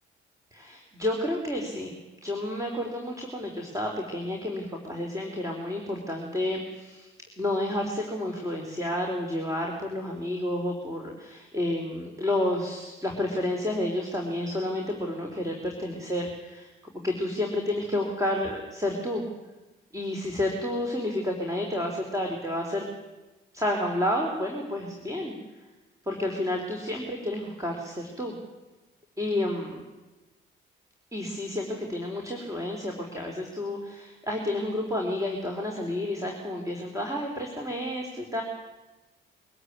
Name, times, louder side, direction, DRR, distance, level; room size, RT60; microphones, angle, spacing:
voice 1, 0.5-1.9 2.2-19.2 19.9-22.9 23.5-25.4 26.0-28.3 29.2-29.8 31.1-38.4, left 1 dB, 15° right, 1 dB, 3.9 m, -30 dB
24.0 x 13.0 x 9.6 m, 1.1 s
cardioid pair, 80°, 21 cm